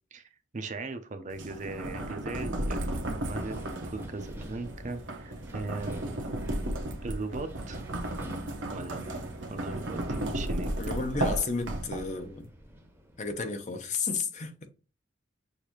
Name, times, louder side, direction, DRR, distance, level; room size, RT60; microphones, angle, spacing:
voice 1, 0.1-6.2 7.0-7.9 8.7-9.2 9.5-10.7, right 3 dB, 40° right, 0.6 m, -39 dB
sound 1, 1.3-12.3, right 1 dB, 85° right, 0.9 m, -34 dB
Wind, 1.9-13.4, right 1 dB, 10° right, 0.8 m, -48 dB
voice 2, 10.8-12.5 13.2-14.7, left 4 dB, 40° left, 0.7 m, -32 dB
6.6 x 2.7 x 3.0 m
head